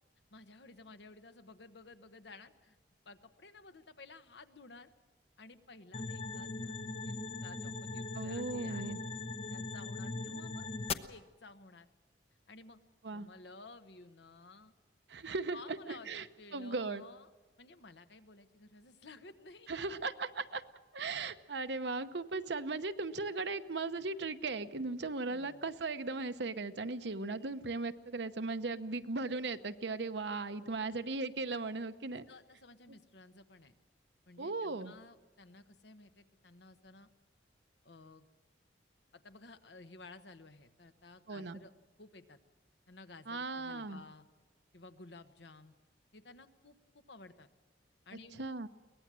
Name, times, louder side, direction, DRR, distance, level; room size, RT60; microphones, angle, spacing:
voice 1, 0.3-2.8 3.0-4.9 5.4-6.8 7.0-8.9 9.5-10.7 11.1-11.9 12.5-12.8 13.1-14.7 15.5-17.3 17.6-19.8 25.3-25.7 30.8-31.0 32.3-33.7 34.3-37.1 37.8-38.3 39.1-41.7 42.0-42.4 42.9-44.3 44.7-45.7 46.1-47.5 48.0-48.5, left 3 dB, 70° left, 10 dB, 1.2 m, -54 dB
sound 1, 5.9-10.9, left 3 dB, 35° left, 0.8 m, -40 dB
voice 2, 8.1-9.0 13.0-13.3 15.1-16.3 16.5-17.0 19.7-20.6 20.9-32.3 34.4-34.9 41.3-41.6 43.3-44.0 48.4-48.7, right 3 dB, 70° right, 10 dB, 0.9 m, -37 dB
23.0 x 19.0 x 7.6 m, 1.2 s
head